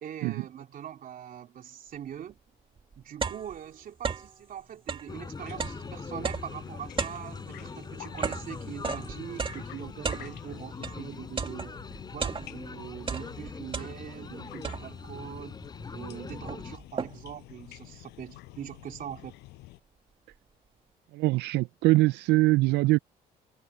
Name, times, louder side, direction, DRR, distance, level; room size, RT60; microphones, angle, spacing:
voice 1, 0.0-2.4 3.0-11.8 12.1-15.6 15.9-19.4, right 10 dB, 55° right, 3.2 m, -42 dB
sound 1, 2.3-2.4 2.8-4.4 4.8-11.0 11.4-12.7 13.0-14.3 14.6-15.2 15.8-15.9 16.2-17.4, right 5 dB, 30° right, 2.4 m, -35 dB
sound 2, 5.1-16.8, left 4 dB, 25° left, 5.6 m, -42 dB
sound 3, 5.4-19.8, left 19 dB, 90° left, 6.6 m, -48 dB
voice 2, 21.1-23.0, right 20 dB, 80° right, 0.4 m, -23 dB
cardioid pair, 110°, 17 cm